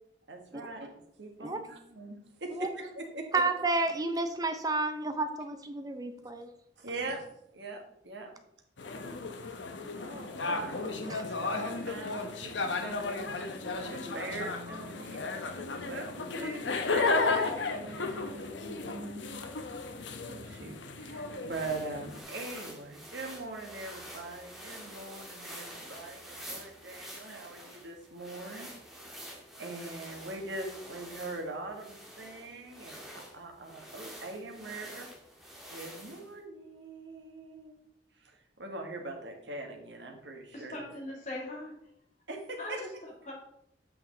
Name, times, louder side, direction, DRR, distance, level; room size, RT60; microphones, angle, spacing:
voice 1, 0.3-3.4 6.8-7.2 7.5-8.3 9.9-15.2 15.9-19.4 20.3-28.7 29.1-35.1 35.7-37.8 38.2-40.8 42.3-42.9, right 2 dB, 80° right, 3 dB, 1.5 m, -42 dB
voice 2, 3.3-6.5 11.1-11.2, right 3 dB, 20° right, 7 dB, 0.6 m, -31 dB
sound 1, 8.8-22.2, left 3 dB, 90° left, 0.8 m, -34 dB
sound 2, 21.5-36.3, equal, ahead, 1.5 m, -47 dB
voice 3, 40.5-41.7 42.6-43.3, left 1 dB, 40° left, -3 dB, 2.4 m, -40 dB
7.9 x 6.0 x 3.8 m, 0.76 s
head